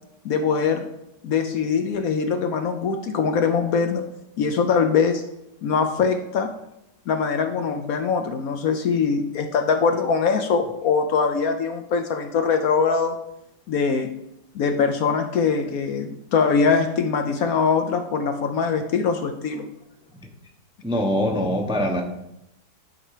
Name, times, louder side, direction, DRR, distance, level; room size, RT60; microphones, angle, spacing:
voice 1, 0.2-0.9 1.2-4.0 4.4-5.2 5.6-6.5 7.1-13.1 13.7-14.1 14.5-19.7, left 5 dB, 65° left, 6 dB, 1.0 m, -22 dB
voice 2, 20.8-22.0, equal, 5° right, 1 dB, 0.7 m, -23 dB
11.0 x 4.3 x 4.9 m, 0.82 s
omnidirectional pair, 1.8 m